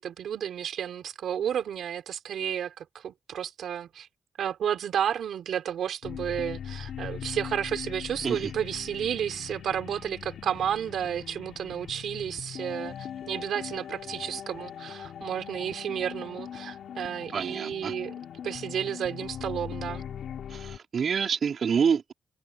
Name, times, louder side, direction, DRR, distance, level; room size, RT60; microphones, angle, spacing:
voice 1, 0.0-4.1 4.4-18.1 18.4-20.0, right 9 dB, 85° right, 4.0 m, -32 dB
sound 1, 6.0-20.8, left 9 dB, 80° left, 6.5 m, -40 dB
voice 2, 17.3-17.9 20.5-22.1, right 6 dB, 65° right, 3.8 m, -27 dB
cardioid pair, 65°, 0 cm